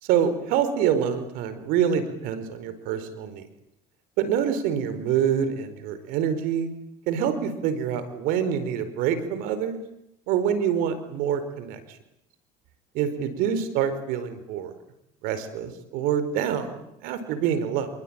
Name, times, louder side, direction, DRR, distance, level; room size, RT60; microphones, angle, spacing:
voice 1, 0.0-3.4 4.2-6.7 7.1-9.8 10.3-11.8 12.9-14.7 15.2-17.9, right 8 dB, 75° right, 12 dB, 4.8 m, -26 dB
27.0 x 23.5 x 9.0 m, 0.76 s
supercardioid pair, 90°, 15 cm